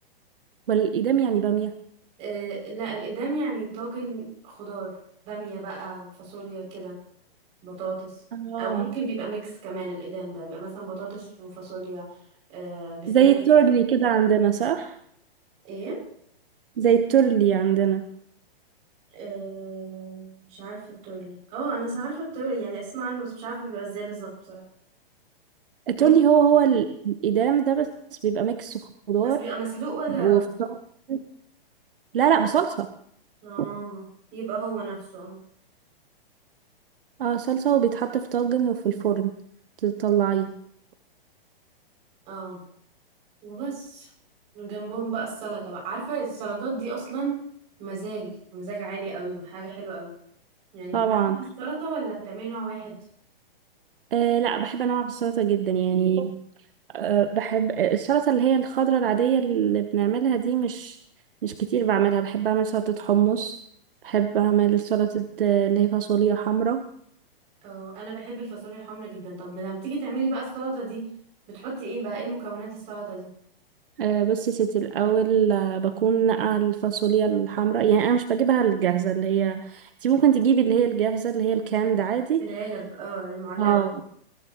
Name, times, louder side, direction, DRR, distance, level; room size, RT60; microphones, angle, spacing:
voice 1, 0.7-1.8 8.3-8.9 13.1-15.0 16.8-18.1 25.9-28.8 29.1-29.4 30.2-30.4 30.7-30.8 31.1-31.2 32.1-32.9 33.6-33.7 37.2-39.3 39.8-40.5 50.9-51.4 54.1-56.4 56.9-61.0 61.4-63.6 64.0-66.9 74.0-82.5 83.6-83.9, right 8 dB, 65° right, 8 dB, 1.1 m, -22 dB
voice 2, 2.2-4.9 5.2-7.0 7.6-8.2 8.6-12.1 12.5-13.4 15.6-16.0 19.1-24.6 26.0-26.1 29.2-30.5 33.4-34.1 34.3-35.4 42.2-42.6 43.4-44.1 44.5-47.4 47.8-50.1 50.7-53.0 67.6-71.0 71.5-73.3 82.4-83.8, right 4 dB, 20° right, -4 dB, 6.6 m, -33 dB
21.0 x 15.5 x 3.0 m, 0.67 s
hypercardioid pair, 175°, 30 cm